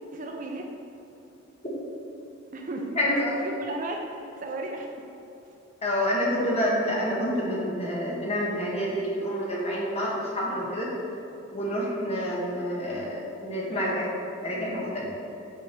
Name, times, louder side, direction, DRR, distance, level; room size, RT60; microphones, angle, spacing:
voice 1, 0.1-0.7 2.5-3.0 3.4-4.0 4.4-4.9, right 2 dB, 40° right, 2 dB, 0.6 m, -34 dB
voice 2, 2.9-3.4 5.8-10.9 11.5-14.1 14.4-15.1, equal, 30° left, -5 dB, 1.6 m, -28 dB
8.6 x 5.1 x 4.6 m, 2.9 s
head